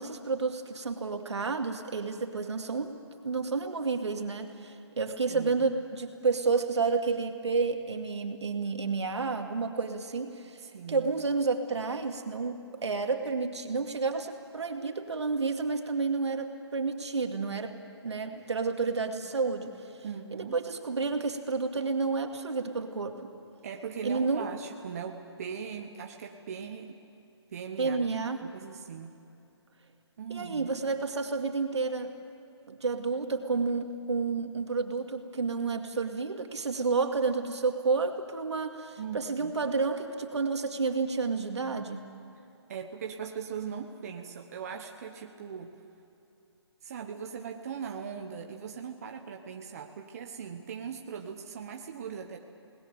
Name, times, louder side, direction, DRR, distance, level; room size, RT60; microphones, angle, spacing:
voice 1, 0.0-2.9 3.2-12.6 12.8-17.8 18.0-19.9 20.3-23.3 24.0-24.5 27.8-28.5 30.3-32.1 32.7-42.1, right 4 dB, 75° right, 5 dB, 2.4 m, -30 dB
voice 2, 5.3-5.7 10.6-11.1 20.0-20.6 23.6-27.0 27.5-28.0 28.4-29.2 30.2-30.8 39.0-39.5 42.7-45.7 46.8-52.4, right 7 dB, 35° right, 3 dB, 1.1 m, -40 dB
28.5 x 20.0 x 7.0 m, 2.8 s
hypercardioid pair, 165°, 14 cm